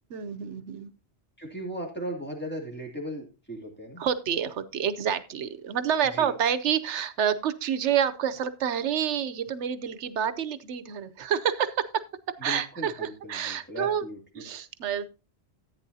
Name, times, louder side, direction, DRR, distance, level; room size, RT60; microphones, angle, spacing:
voice 1, 0.1-0.9 4.0-12.0 12.4-14.1 14.3-15.0, right 8 dB, 85° right, 13 dB, 1.1 m, -28 dB
voice 2, 1.4-4.0 6.1-6.3 12.4-14.4, right 1 dB, 10° left, -1 dB, 2.7 m, -37 dB
14.5 x 9.0 x 2.7 m, 0.32 s
omnidirectional pair, 1.2 m